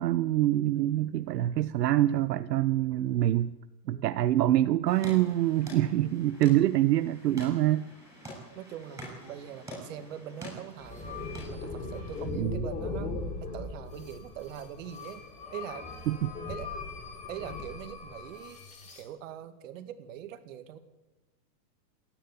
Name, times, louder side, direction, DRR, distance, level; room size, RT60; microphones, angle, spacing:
voice 1, 0.0-3.5 3.9-7.9 12.4-12.6 16.1-16.3, right 14 dB, 80° right, 12 dB, 0.9 m, -25 dB
voice 2, 3.8-4.2 8.5-13.1 13.4-15.2 15.5-15.9 16.5-16.7 17.3-18.6 19.0-20.8, right 10 dB, 50° right, 10 dB, 2.2 m, -43 dB
sound 1, 4.9-12.2, equal, 5° right, 7.0 m, -47 dB
sound 2, 10.8-19.0, left 3 dB, 15° left, 3.2 m, -39 dB
28.0 x 10.5 x 9.7 m, 1.1 s
supercardioid pair, 170°, 48 cm